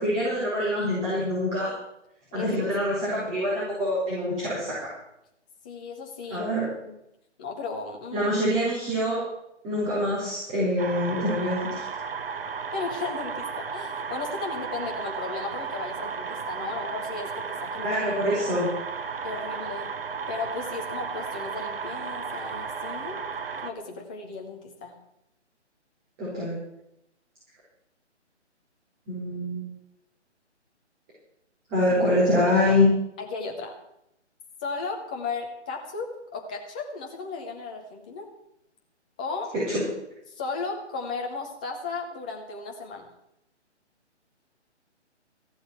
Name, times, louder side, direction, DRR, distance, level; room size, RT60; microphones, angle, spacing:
voice 1, 0.0-1.7 2.3-4.9 6.3-6.6 8.1-9.2 9.6-11.8 17.8-18.7 26.2-26.6 29.1-29.6 31.7-32.9 39.5-39.8, left 1 dB, 20° right, -8 dB, 4.7 m, -25 dB
voice 2, 5.6-6.5 6.8-7.0 7.4-8.3 12.7-18.0 18.4-18.5 19.2-19.9 20.3-23.2 23.6-25.0 32.4-32.8 33.2-33.7 34.6-38.3 39.2-39.5 40.3-43.1, left 4 dB, 5° left, 1 dB, 0.6 m, -35 dB
sound 1, 10.8-23.7, right 5 dB, 55° right, 1.2 m, -34 dB
14.5 x 7.9 x 8.0 m, 0.82 s
figure-of-eight pair, 145°, 35 cm